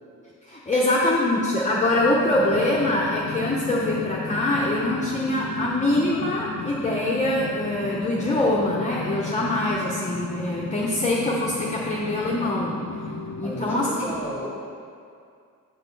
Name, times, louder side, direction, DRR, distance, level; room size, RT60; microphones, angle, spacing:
voice 1, 0.5-12.7 13.4-13.9, left 1 dB, 20° left, -4 dB, 0.7 m, -24 dB
sound 1, 1.6-13.8, left 4 dB, 70° left, 0.5 m, -34 dB
voice 2, 13.4-14.5, equal, 5° right, -6 dB, 2.0 m, -33 dB
8.1 x 4.1 x 6.6 m, 2.4 s
wide cardioid pair, 150°, 32 cm